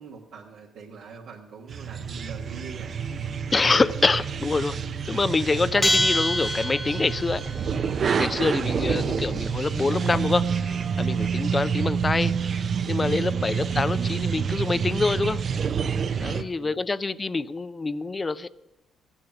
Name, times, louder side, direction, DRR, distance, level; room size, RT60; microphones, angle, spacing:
voice 1, 0.0-3.0 8.1-8.4 11.1-11.4 16.0-16.8, right 5 dB, 85° right, -5 dB, 1.6 m, -44 dB
sound 1, 1.7-16.4, right 6 dB, 50° right, 0.6 m, -28 dB
voice 2, 3.5-4.8 5.1-7.4 8.2-12.3 12.6-15.4 16.2-18.5, left 3 dB, 30° left, 16 dB, 0.5 m, -26 dB
Bell, 5.8-7.4, left 1 dB, 10° left, 0.9 m, -25 dB
15.0 x 9.8 x 5.9 m, 0.99 s
cardioid pair, 90°, 0 cm